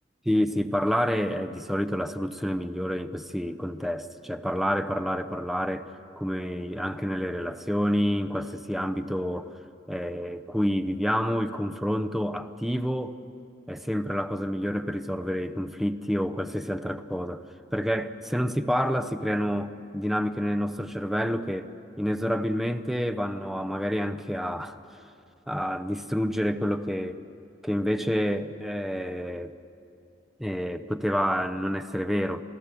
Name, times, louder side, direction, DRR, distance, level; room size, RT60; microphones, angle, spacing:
voice 1, 0.3-5.8 6.2-9.6 9.9-13.2 13.7-17.5 17.7-21.7 22.0-24.8 25.5-27.2 27.6-29.6 30.4-32.4, equal, ahead, 9 dB, 0.7 m, -28 dB
28.0 x 15.5 x 6.8 m, 2.6 s
head